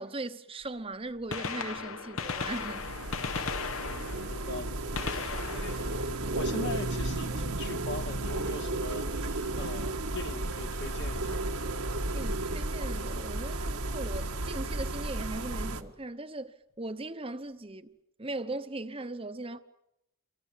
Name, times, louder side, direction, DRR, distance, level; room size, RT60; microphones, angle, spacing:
voice 1, 0.0-2.9 5.2-5.4 12.1-19.6, right 2 dB, 25° right, 1.0 m, -39 dB
Gunshot gunfire, 0.6-0.7 1.2-7.0 9.0-9.1 10.1-10.2 11.8-11.9 13.3-13.4 13.6-13.7, left 5 dB, 70° left, 1.2 m, -37 dB
sound 1, 2.2-15.8, right 2 dB, 85° right, 2.0 m, -33 dB
voice 2, 3.8-4.9 5.1-11.9, left 2 dB, 50° left, 1.2 m, -42 dB
28.5 x 23.5 x 7.4 m
head